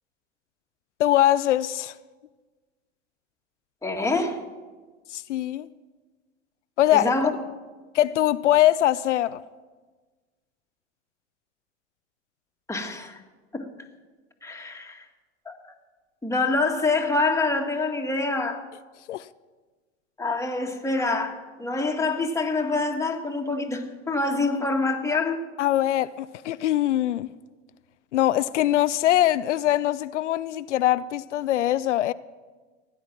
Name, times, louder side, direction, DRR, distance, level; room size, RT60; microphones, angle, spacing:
voice 1, 1.0-1.9 5.1-5.7 6.8-7.1 7.9-9.4 19.1-19.3 25.6-27.3 28.1-32.1, left 13 dB, 85° left, 0.5 m, -22 dB
voice 2, 3.8-4.4 6.9-7.3 12.7-13.2 13.5-13.7 14.4-15.0 15.4-15.7 16.2-18.6 20.2-25.4, left 3 dB, 10° left, 1.8 m, -26 dB
16.5 x 10.0 x 5.9 m
hypercardioid pair, 90°, 35 cm